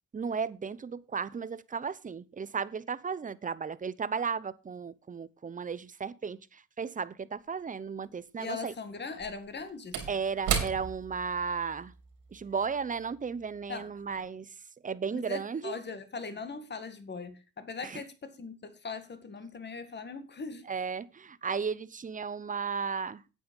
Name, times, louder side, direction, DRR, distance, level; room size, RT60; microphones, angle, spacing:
voice 1, 0.1-8.7 10.1-11.9 12.3-14.5 14.8-15.8 17.8-18.0 20.7-23.2, right 6 dB, 25° right, 0.8 m, -34 dB
Slam / Wood, 7.5-7.6 9.0-13.7 14.1-14.2, right 7 dB, 85° right, 3.6 m, -36 dB
voice 2, 8.4-10.0 13.7-13.9 15.1-20.6, left 4 dB, 35° left, 1.9 m, -40 dB
9.4 x 8.6 x 5.3 m
cardioid pair, 90°, 30 cm